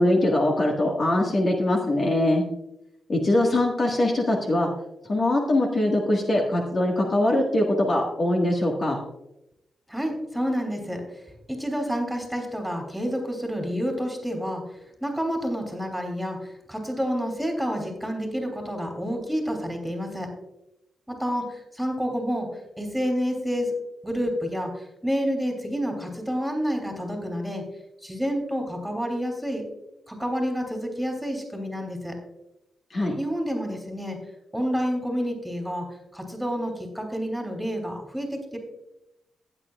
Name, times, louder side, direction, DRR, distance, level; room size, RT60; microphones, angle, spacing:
voice 1, 0.0-2.4 3.1-4.7 5.1-9.0 32.9-33.2, left 1 dB, 45° left, 0 dB, 1.7 m, -22 dB
voice 2, 9.9-11.0 11.5-14.6 15.0-20.3 21.1-22.5 22.8-23.7 24.0-27.6 28.0-29.6 30.1-32.1 33.2-34.2 34.5-35.9 36.1-38.6, equal, 5° right, 3 dB, 3.0 m, -29 dB
15.5 x 8.8 x 2.4 m, 0.87 s
cardioid pair, 85°, 0 cm